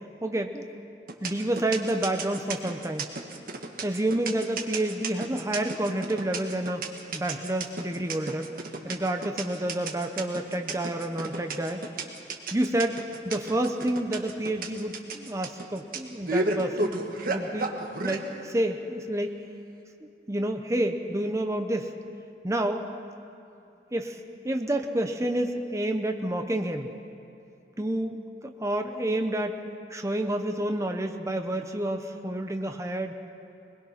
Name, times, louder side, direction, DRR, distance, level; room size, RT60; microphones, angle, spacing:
voice 1, 0.2-0.6 1.2-3.1 3.8-6.9 7.1-8.5 8.8-11.8 12.5-13.0 13.2-17.0 17.3-17.8 18.0-19.4 20.0-21.9 22.4-22.9 23.9-24.2 24.4-26.9 27.8-28.2 28.4-29.6 29.9-33.1, right 1 dB, 15° right, 5 dB, 0.8 m, -29 dB
sound 1, 1.1-18.2, right 3 dB, 50° right, 1.6 m, -32 dB
22.5 x 21.0 x 5.8 m, 2.8 s
head